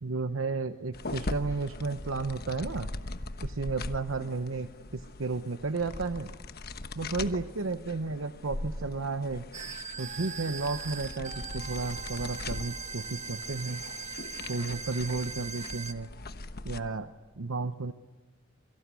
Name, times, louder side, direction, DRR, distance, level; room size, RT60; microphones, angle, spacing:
voice 1, 0.0-2.9 3.4-6.3 6.9-9.5 10.0-13.8 14.5-16.1 16.6-17.1 17.4-17.9, right 3 dB, 85° right, 9 dB, 0.9 m, -33 dB
sound 1, 0.9-16.8, left 2 dB, 50° left, 1.2 m, -41 dB
sound 2, 9.5-15.9, right 5 dB, 35° right, 1.3 m, -40 dB
28.5 x 23.5 x 8.3 m, 1.3 s
head